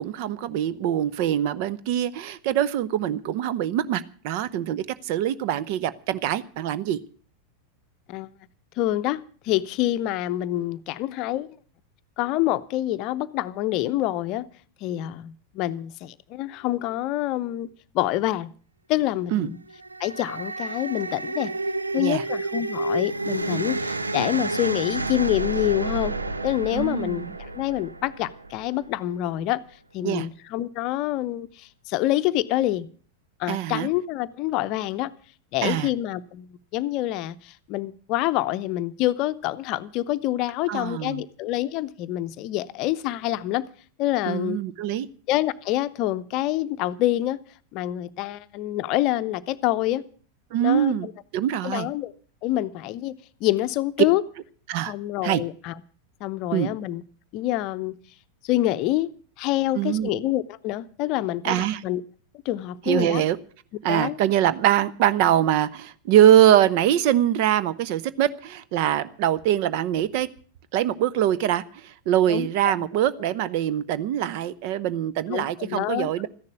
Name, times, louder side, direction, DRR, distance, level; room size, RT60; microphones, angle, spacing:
voice 1, 0.0-7.0 19.3-19.5 21.9-22.2 26.7-27.3 30.0-30.3 33.5-33.9 35.6-35.9 40.7-41.2 44.3-45.1 50.5-51.1 51.3-51.9 54.7-54.9 55.2-55.4 56.5-56.7 59.7-60.2 61.4-61.8 62.9-63.4 63.8-70.3 70.7-76.3, right 11 dB, 45° right, 0.8 m, -23 dB
voice 2, 8.8-9.2 9.4-11.5 12.2-14.5 14.8-17.7 17.9-18.5 18.9-19.6 20.0-21.5 21.9-26.1 26.4-29.6 29.9-32.9 33.4-35.1 35.5-36.5 36.7-43.6 44.0-44.6 45.3-47.4 47.7-50.0 50.6-51.1 51.6-52.1 52.4-53.1 53.4-54.2 54.9-55.7 56.2-57.0 57.3-57.9 58.4-59.1 59.4-62.0 62.4-63.2 63.9-64.2 72.3-72.5 75.3-76.1, left 15 dB, 40° left, 0.7 m, -26 dB
sound 1, 19.7-29.0, right 2 dB, 80° right, 0.8 m, -30 dB
14.0 x 10.5 x 8.2 m
figure-of-eight pair, 90°, 0 cm